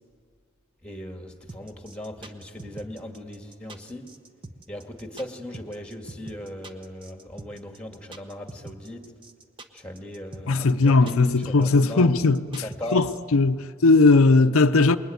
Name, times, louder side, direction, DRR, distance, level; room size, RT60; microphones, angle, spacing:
voice 1, 0.8-4.1 4.7-9.0 9.7-12.2 12.6-13.1, left 1 dB, 5° left, 1.9 m, -38 dB
sound 1, 1.5-13.2, right 2 dB, 25° right, 1.1 m, -42 dB
voice 2, 10.5-15.0, left 3 dB, 85° left, 0.7 m, -19 dB
28.0 x 21.5 x 9.5 m
head